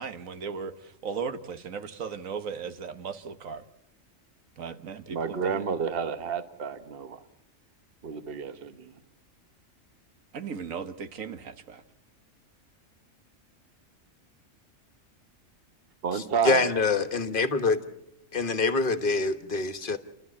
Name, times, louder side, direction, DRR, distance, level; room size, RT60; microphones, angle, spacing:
voice 1, 0.0-3.6 4.6-5.6 10.3-11.8, right 6 dB, 90° right, 10 dB, 1.6 m, -37 dB
voice 2, 5.1-7.2 8.0-8.9 16.0-16.6, right 6 dB, 50° right, 11 dB, 1.2 m, -30 dB
voice 3, 16.1-17.8 18.3-20.0, left 3 dB, 40° left, 10 dB, 1.4 m, -25 dB
29.5 x 12.5 x 8.4 m, 0.84 s
omnidirectional pair, 1.4 m